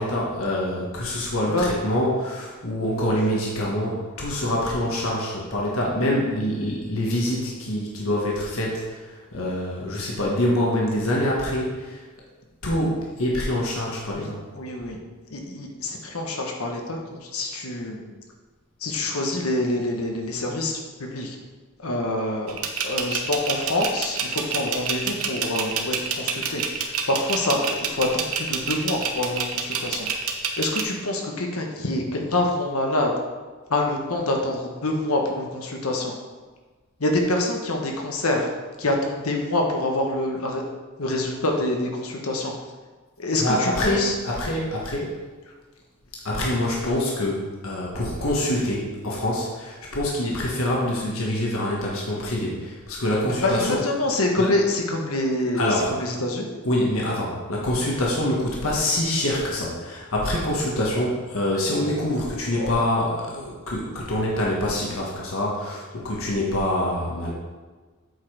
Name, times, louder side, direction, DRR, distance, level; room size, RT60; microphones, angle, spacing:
voice 1, 0.0-12.0 12.6-14.4 43.4-45.2 46.2-53.8 54.4-54.5 55.5-55.9 56.6-67.3, left 1 dB, 70° left, -4 dB, 1.5 m, -25 dB
voice 2, 14.1-15.0 15.3-18.1 18.8-21.4 21.8-30.1 30.6-33.1 33.7-36.1 37.0-38.5 38.8-40.6 41.0-42.5 43.2-44.2 53.4-56.6 62.5-62.7, left 2 dB, 90° left, 1 dB, 1.3 m, -26 dB
sound 1, 22.5-30.8, right 7 dB, 85° right, 0.9 m, -27 dB
8.1 x 5.1 x 4.9 m, 1.3 s
head